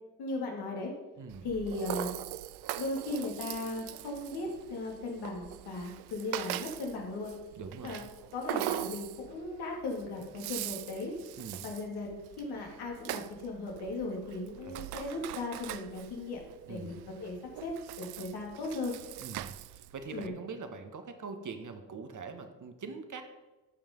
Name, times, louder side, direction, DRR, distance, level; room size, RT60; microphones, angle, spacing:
voice 1, 0.2-0.9 1.4-2.1 2.7-7.3 7.8-8.0 8.3-11.1 11.6-17.4 17.6-19.0 20.1-20.3, left 2 dB, 75° left, -1 dB, 3.0 m, -37 dB
voice 2, 1.1-1.5 7.5-8.0 11.4-11.6 14.6-14.9 16.7-17.0 19.2-23.2, right 5 dB, 50° right, 7 dB, 1.7 m, -43 dB
Rattle (instrument), 1.3-20.3, right 15 dB, 75° right, 0.6 m, -42 dB
14.0 x 5.5 x 5.4 m, 1.1 s
hypercardioid pair, 50°, 39 cm